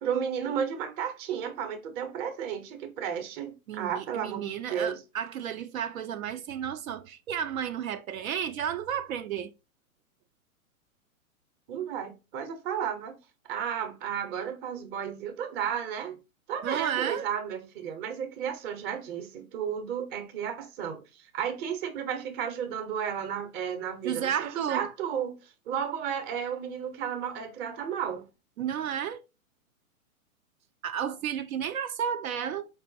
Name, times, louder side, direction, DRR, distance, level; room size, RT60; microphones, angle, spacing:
voice 1, 0.0-5.0 11.7-13.2 13.5-16.2 16.5-28.2, right 8 dB, 25° right, 0.6 m, -33 dB
voice 2, 3.7-9.5 16.6-17.3 24.0-24.9 28.6-29.2 30.8-32.7, right 9 dB, 75° right, 0.5 m, -32 dB
4.6 x 2.0 x 3.8 m
hypercardioid pair, 120°, 42 cm